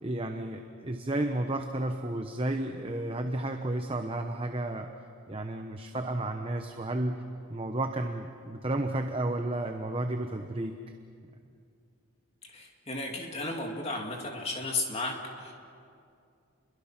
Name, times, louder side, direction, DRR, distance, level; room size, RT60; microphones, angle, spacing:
voice 1, 0.0-4.9 5.3-7.2 7.5-10.8, right 1 dB, 25° right, 5 dB, 0.9 m, -32 dB
voice 2, 12.5-15.5, left 2 dB, 30° left, 1 dB, 2.8 m, -34 dB
30.0 x 22.5 x 6.0 m, 2.4 s
head